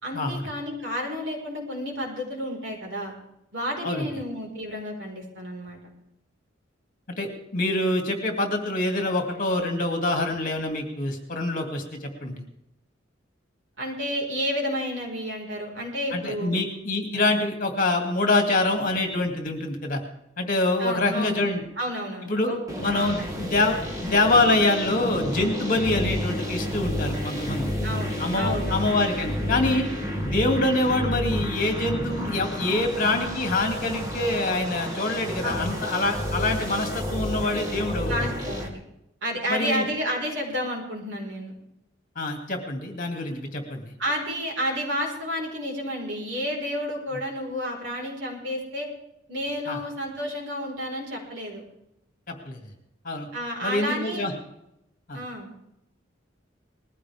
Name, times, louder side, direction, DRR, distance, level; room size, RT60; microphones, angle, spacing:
voice 1, 0.0-3.1 3.5-5.8 13.8-16.6 20.8-22.6 22.9-23.1 23.4-23.6 24.1-24.2 25.8-26.1 27.8-28.9 35.4-35.8 38.1-38.8 39.2-41.5 44.0-48.9 49.3-51.6 53.3-54.3 55.1-55.5, equal, 65° right, 0 dB, 5.0 m, -31 dB
voice 2, 7.2-12.4 16.1-20.0 20.4-21.6 22.3-22.5 22.8-27.7 28.2-29.9 30.2-38.3 39.5-39.8 42.2-43.8 49.7-49.8 52.3-52.6 53.0-53.3 53.6-54.3 55.1-55.2, left 2 dB, 45° left, 3 dB, 2.7 m, -25 dB
sound 1, 22.7-38.7, equal, 20° right, 2.3 m, -30 dB
20.5 x 15.0 x 3.6 m, 0.81 s
head